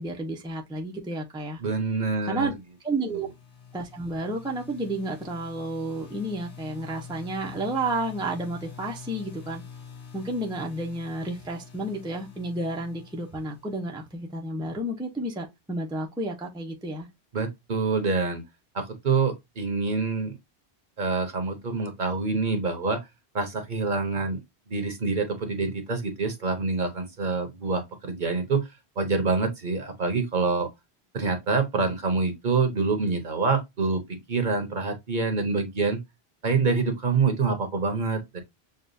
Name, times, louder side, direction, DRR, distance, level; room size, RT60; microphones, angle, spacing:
voice 1, 0.0-1.6 2.2-2.5 2.8-3.3 3.7-9.6 10.1-17.1, right 2 dB, 5° right, 0.6 m, -31 dB
voice 2, 1.6-2.5 3.1-3.2 17.3-18.4 18.7-20.3 21.0-23.0 23.3-24.4 24.7-28.7 29.0-30.7 31.1-36.0 36.4-38.4, right 4 dB, 50° right, 1.0 m, -26 dB
sound 1, 2.6-14.4, left 6 dB, 85° left, 1.3 m, -46 dB
6.6 x 2.3 x 2.5 m
omnidirectional pair, 1.1 m